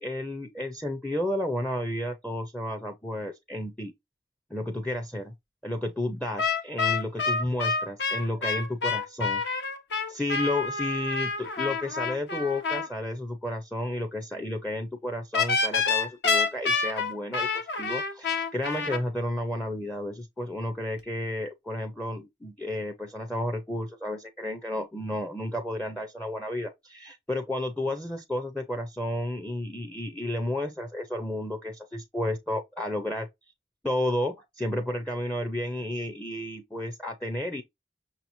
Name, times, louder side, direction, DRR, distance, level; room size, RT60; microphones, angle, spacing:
voice 1, 0.0-3.9 4.5-5.3 5.6-9.4 10.1-33.3 33.8-37.6, left 1 dB, 5° left, 0.5 m, -32 dB
sound 1, 6.4-12.9 15.3-19.0, left 4 dB, 65° left, 1.1 m, -28 dB
6.1 x 2.9 x 2.6 m
head